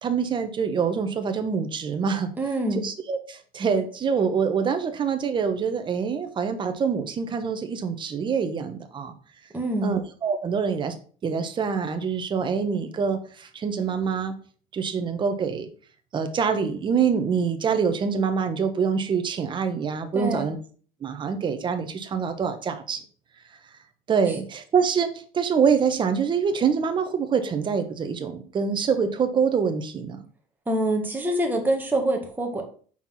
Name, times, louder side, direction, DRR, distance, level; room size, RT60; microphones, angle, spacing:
voice 1, 0.0-2.3 2.8-9.1 9.8-10.9 11.2-14.3 14.7-15.7 16.1-20.6 21.0-23.0 24.1-30.2, right 6 dB, 30° right, 7 dB, 1.2 m, -25 dB
voice 2, 2.4-2.8 9.5-10.0 20.1-20.5 24.3-24.4 30.7-32.6, right 1 dB, 10° right, 2 dB, 1.8 m, -25 dB
5.9 x 4.5 x 5.9 m, 0.43 s
cardioid pair, 135°, 15 cm